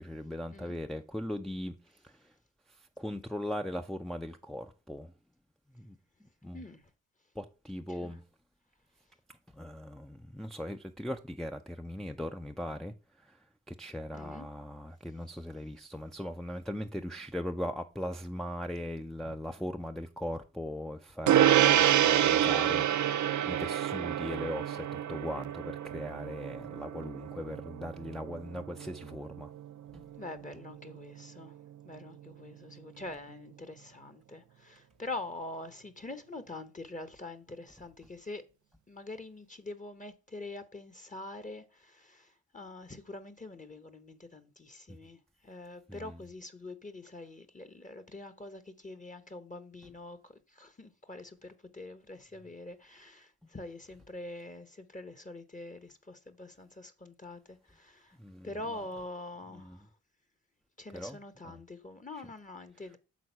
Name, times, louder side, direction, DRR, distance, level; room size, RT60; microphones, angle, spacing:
voice 1, 0.0-1.8 2.0-2.3 3.0-5.1 5.7-6.0 6.4-6.6 7.4-8.2 9.5-13.4 13.7-29.5 29.9-30.0 45.9-46.2 58.2-58.8 59.5-59.8 60.9-61.6, left 1 dB, ahead, 0.5 m, -39 dB
voice 2, 14.1-14.5 19.2-19.3 30.2-31.5 31.8-38.4 38.9-42.3 42.5-50.2 50.6-58.1 58.4-59.8 60.8-63.0, left 2 dB, 20° left, 0.9 m, -44 dB
Gong, 21.3-31.0, right 11 dB, 60° right, 0.5 m, -28 dB
6.2 x 3.8 x 5.5 m
supercardioid pair, 50°, 34 cm